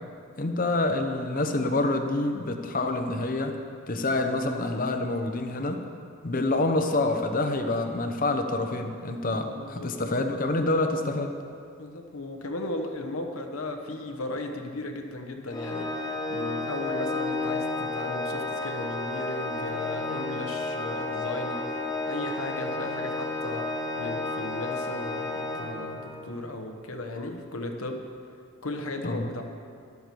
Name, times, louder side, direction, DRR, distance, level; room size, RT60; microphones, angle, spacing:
voice 1, 0.4-3.6 3.9-5.8 6.2-11.4 29.0-29.3, left 2 dB, 40° left, 6 dB, 0.8 m, -27 dB
voice 2, 9.3-10.0 11.8-21.7 22.1-28.1 28.6-29.4, left 2 dB, 80° left, 4 dB, 1.2 m, -36 dB
Organ, 15.5-26.3, left 2 dB, 20° left, 1.5 m, -32 dB
12.5 x 12.0 x 4.6 m, 2.3 s
head